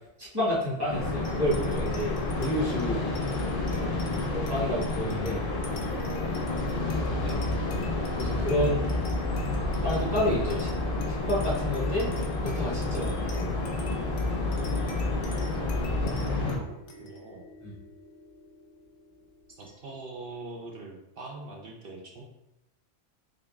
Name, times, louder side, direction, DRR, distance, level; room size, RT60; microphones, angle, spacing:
voice 1, 0.2-3.0 4.3-5.4 8.2-8.9 9.8-10.7 11.3-12.1 12.4-13.5 17.6-17.7, left 1 dB, 20° right, -8 dB, 1.2 m, -29 dB
sound 1, 0.9-16.6, left 2 dB, 50° left, 0.8 m, -29 dB
sound 2, 1.2-20.1, left 1 dB, 75° left, 1.0 m, -48 dB
voice 2, 15.4-16.1 16.4-16.6 17.0-17.4 19.5-22.2, right 3 dB, 55° right, -1 dB, 0.7 m, -43 dB
3.8 x 3.5 x 2.3 m, 0.88 s
omnidirectional pair, 1.3 m